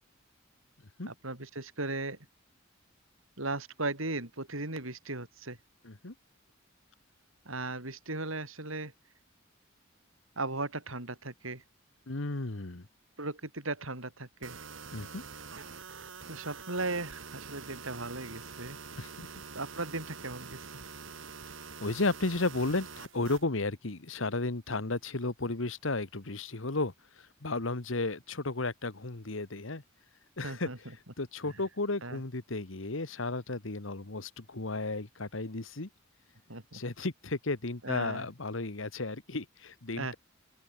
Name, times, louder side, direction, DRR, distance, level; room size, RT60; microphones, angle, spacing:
voice 1, 1.1-2.2 3.4-5.6 7.5-8.9 10.4-11.6 13.2-14.6 16.3-18.8 19.5-20.6 30.4-30.9 31.5-31.6 32.0-32.2 36.5-36.8 37.8-38.3 40.0-40.1, right 2 dB, 90° right, 6.9 m, -37 dB
voice 2, 5.8-6.1 12.1-12.8 14.9-15.2 19.0-19.3 21.8-29.8 30.4-30.7 31.2-35.9 36.7-40.1, left 2 dB, 75° left, 1.6 m, -34 dB
sound 1, 14.4-23.4, right 5 dB, 70° right, 2.8 m, -46 dB
open air
head